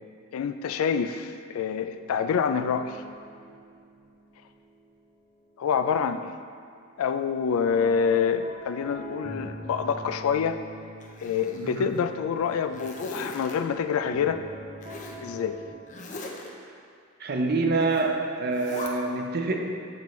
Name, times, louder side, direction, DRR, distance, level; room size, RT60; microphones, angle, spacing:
voice 1, 0.3-3.0 5.6-6.3 7.0-10.6 11.2-14.4 15.2-15.6, left 6 dB, 85° left, 9 dB, 0.3 m, -26 dB
sound 1, 1.9-5.9 6.3-15.7, equal, 25° right, 0.9 m, -45 dB
Zipper (clothing), 11.0-12.0 12.4-13.6 14.8-15.2 15.9-16.5 17.8-18.1 18.5-18.9, left 2 dB, 35° left, 0.6 m, -40 dB
voice 2, 17.2-19.9, right 3 dB, 50° right, 3 dB, 0.5 m, -26 dB
7.5 x 5.2 x 3.1 m, 2.3 s
head